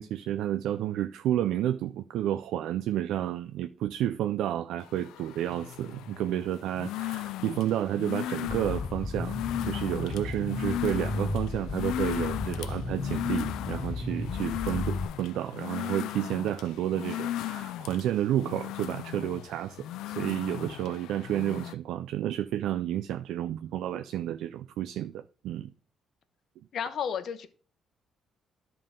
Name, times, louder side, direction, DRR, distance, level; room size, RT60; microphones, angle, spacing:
voice 1, 0.0-9.4 9.6-25.7, right 12 dB, 85° right, 0.3 m, -31 dB
sound 1, 4.8-21.7, left 13 dB, 90° left, 0.3 m, -36 dB
sound 2, 8.5-15.0, left 2 dB, ahead, 1.7 m, -34 dB
voice 2, 26.7-27.5, left 8 dB, 65° left, 0.8 m, -32 dB
11.0 x 3.8 x 5.1 m
cardioid pair, 90°, 0 cm